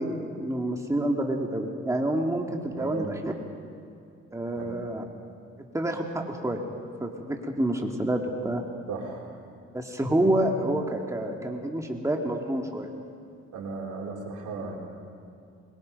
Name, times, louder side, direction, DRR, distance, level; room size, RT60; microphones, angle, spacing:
voice 1, 0.0-3.3 4.3-5.0 5.7-6.6 7.0-8.6 9.7-12.9, right 1 dB, 10° right, 1 dB, 2.2 m, -28 dB
voice 2, 2.8-3.1 4.5-4.8 8.9-9.2 13.5-14.8, right 4 dB, 85° right, -1 dB, 4.0 m, -36 dB
25.0 x 22.0 x 5.3 m, 2.5 s
cardioid pair, 90°, 30 cm